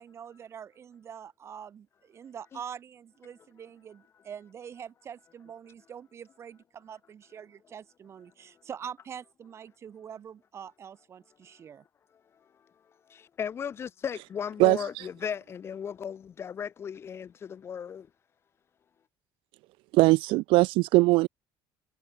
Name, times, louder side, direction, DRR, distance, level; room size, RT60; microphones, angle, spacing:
voice 1, 0.0-11.8, right 8 dB, 30° right, 4.4 m, -44 dB
voice 2, 13.1-18.1, left 7 dB, 25° left, 3.1 m, -36 dB
voice 3, 14.6-15.0 19.9-21.3, right 22 dB, 70° right, 0.6 m, -21 dB
cardioid pair, 175°, 9 cm